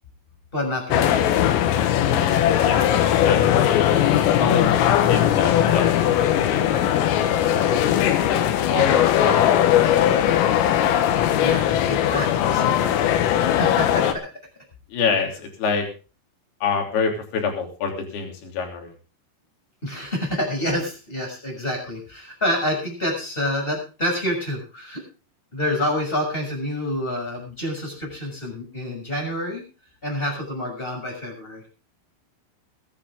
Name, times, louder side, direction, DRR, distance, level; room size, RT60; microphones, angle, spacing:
voice 1, 0.5-1.3 11.4-13.0 13.4-14.3 19.8-25.0 25.5-29.6 30.0-31.6, left 1 dB, 10° left, 1 dB, 6.2 m, -28 dB
sound 1, 0.9-14.1, left 11 dB, 80° left, 3.9 m, -19 dB
voice 2, 3.2-4.8 5.1-5.9 6.2-6.8 7.6-8.4 8.7-9.7 14.9-15.9 16.6-18.9, left 5 dB, 55° left, 2 dB, 4.8 m, -27 dB
21.5 x 10.5 x 3.7 m, 0.34 s
omnidirectional pair, 5.9 m